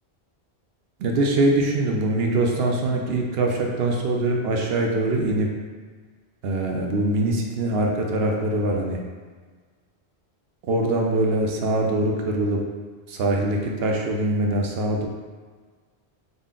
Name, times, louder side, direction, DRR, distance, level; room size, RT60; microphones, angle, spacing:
voice 1, 1.0-5.5 6.4-9.0 10.6-12.6 13.1-15.1, right 2 dB, 70° right, 1 dB, 0.8 m, -23 dB
3.8 x 2.1 x 3.6 m, 1.5 s
omnidirectional pair, 1.1 m